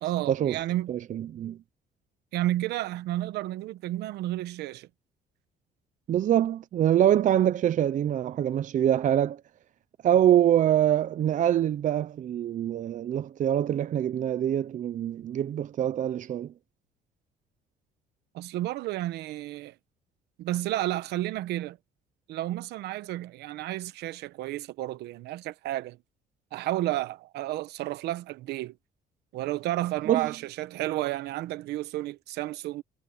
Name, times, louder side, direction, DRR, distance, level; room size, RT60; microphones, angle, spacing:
voice 1, 0.0-1.0 2.3-4.9 18.3-19.7 20.4-21.8 22.3-26.0 26.5-28.8 29.3-32.8, right 15 dB, 80° right, 1.0 m, -31 dB
voice 2, 0.9-1.6 6.1-9.4 10.0-16.5 30.1-30.3, right 11 dB, 50° right, 0.7 m, -24 dB
cardioid pair, 110°, 17 cm